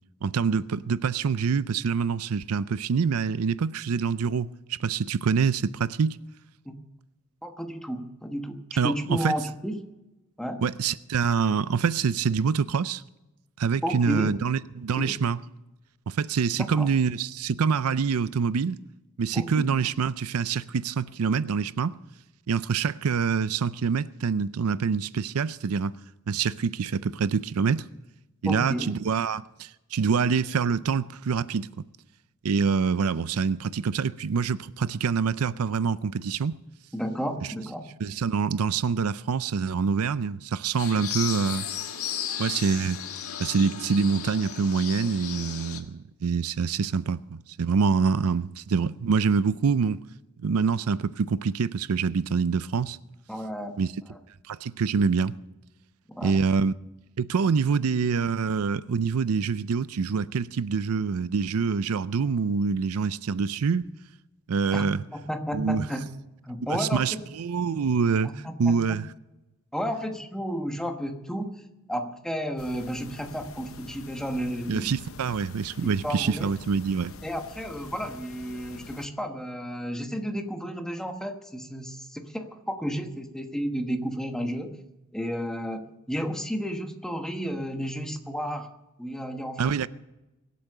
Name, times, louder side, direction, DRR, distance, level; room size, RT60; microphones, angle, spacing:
voice 1, 0.2-6.2 8.8-9.4 10.6-13.0 13.6-15.4 16.1-18.8 19.2-22.0 22.5-26.0 26.3-27.9 28.4-31.7 32.4-36.5 38.0-41.7 42.4-43.0 43.4-50.0 50.4-53.0 53.8-53.9 54.5-55.3 56.2-56.7 57.2-63.9 64.5-65.0 65.5-65.9 66.7-68.3 68.6-69.1 74.7-77.1 89.6-89.9, right 5 dB, 85° right, 0.5 m, -25 dB
voice 2, 7.4-9.8 10.4-10.6 13.8-14.4 15.0-15.1 16.6-16.9 19.3-19.8 28.4-29.0 36.9-37.9 53.3-53.8 54.1-54.2 56.1-56.4 64.7-64.8 65.1-66.1 66.4-67.2 68.2-68.8 69.7-71.6 71.9-74.9 75.8-76.5 77.2-84.7 85.1-88.7 89.0-89.9, equal, 5° left, 1.3 m, -32 dB
sound 1, 40.8-45.8, left 9 dB, 85° left, 1.6 m, -34 dB
sound 2, 72.6-79.1, left 4 dB, 65° left, 0.9 m, -46 dB
23.0 x 8.4 x 6.7 m
head